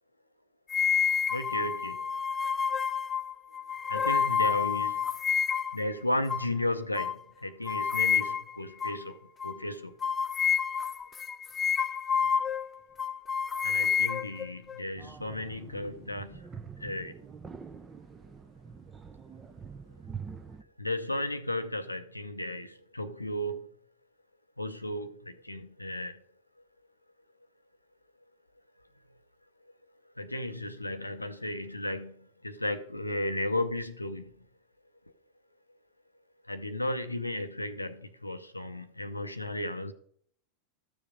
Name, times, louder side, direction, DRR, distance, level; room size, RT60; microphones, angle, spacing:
sound 1, 0.7-5.8 6.3-6.5 7.0-7.2 7.7-8.6 8.8-9.0 9.4-9.6 10.0-12.7 13.0-14.8, left 7 dB, 20° left, 0.3 m, -29 dB
voice 1, 1.3-2.1 3.9-5.0 5.7-9.1 9.4-9.9 13.6-16.4 16.8-17.1 20.8-23.6 24.6-26.2 30.2-32.1 32.4-34.3 36.5-39.9, left 1 dB, 85° left, 0.6 m, -34 dB
sound 2, 15.0-20.6, right 6 dB, 15° right, 0.8 m, -45 dB
13.0 x 7.0 x 5.1 m
figure-of-eight pair, 90°, 0 cm